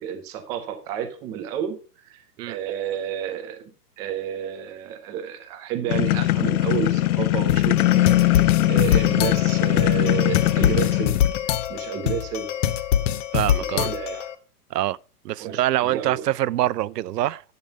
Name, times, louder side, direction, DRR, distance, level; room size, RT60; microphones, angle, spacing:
voice 1, 0.0-1.8 2.0-3.6 4.0-11.2 11.5-12.5 13.5-14.3 15.4-16.3, right 9 dB, 10° right, 0.3 m, -31 dB
sound 1, 5.9-11.5, left 14 dB, 65° left, 0.6 m, -20 dB
sound 2, 7.5-14.3, left 10 dB, 50° left, 1.0 m, -25 dB
voice 2, 13.3-13.9 14.7-15.0 15.2-17.4, right 14 dB, 85° right, 0.6 m, -24 dB
10.5 x 5.4 x 5.0 m
hypercardioid pair, 130°, 47 cm